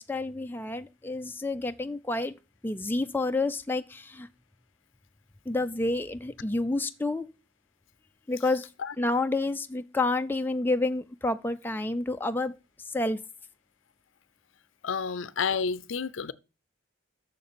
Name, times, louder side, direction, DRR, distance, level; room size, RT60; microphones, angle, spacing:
voice 1, 0.0-2.3 2.6-4.3 5.5-7.3 8.3-8.7 9.0-12.6 12.9-13.2, left 2 dB, 10° left, 0.4 m, -29 dB
voice 2, 14.8-16.3, left 5 dB, 75° left, 0.5 m, -30 dB
6.7 x 6.6 x 6.8 m
head